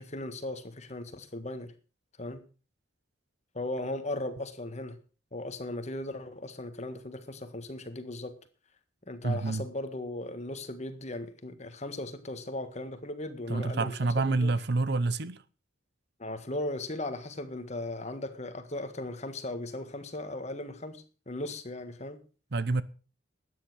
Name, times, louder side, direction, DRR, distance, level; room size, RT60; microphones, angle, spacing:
voice 1, 0.0-1.7 2.2-2.5 3.5-5.0 5.3-8.3 9.1-14.5 16.2-22.2, left 1 dB, 35° left, 1.6 m, -37 dB
voice 2, 9.2-9.6 13.5-15.4 22.5-22.8, right 3 dB, 55° right, 0.8 m, -28 dB
13.0 x 9.6 x 6.3 m
head